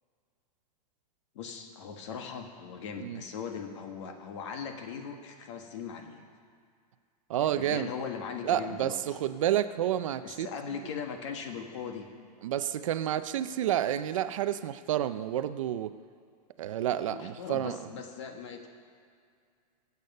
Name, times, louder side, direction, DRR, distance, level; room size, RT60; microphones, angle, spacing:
voice 1, 1.3-6.2 7.4-9.0 10.2-12.1 17.1-18.7, left 6 dB, 45° left, 4 dB, 1.5 m, -39 dB
voice 2, 7.3-7.9 8.4-10.8 12.4-16.0 16.6-17.9, right 11 dB, 50° right, 12 dB, 0.5 m, -30 dB
21.0 x 8.3 x 5.4 m, 2.2 s
supercardioid pair, 180°, 21 cm